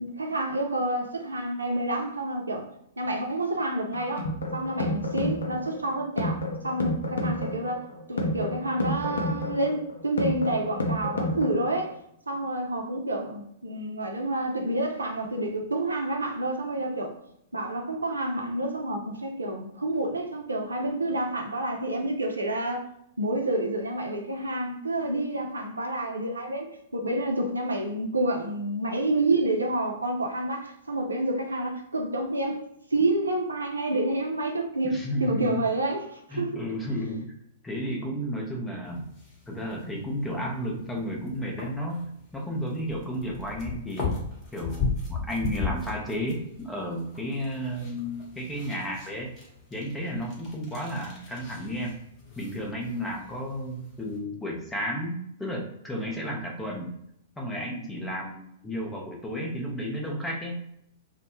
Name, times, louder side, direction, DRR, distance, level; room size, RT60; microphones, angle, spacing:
voice 1, 0.0-2.6 3.0-7.8 8.1-11.9 12.3-17.1 17.5-22.9 23.2-26.7 26.9-32.6 32.9-36.6, right 1 dB, 75° right, 2 dB, 0.4 m, -29 dB
sound 1, 3.9-11.9, left 1 dB, 70° left, 0.5 m, -30 dB
voice 2, 34.8-35.6 36.3-37.3 37.6-39.1 39.5-42.1 42.3-44.2 44.5-49.3 49.7-52.0 52.4-56.9 57.4-60.6, equal, 10° left, -1 dB, 0.6 m, -32 dB
sound 2, 38.8-54.2, left 4 dB, 25° left, 0.9 m, -38 dB
2.1 x 2.0 x 3.0 m, 0.75 s
figure-of-eight pair, 105°, 0 cm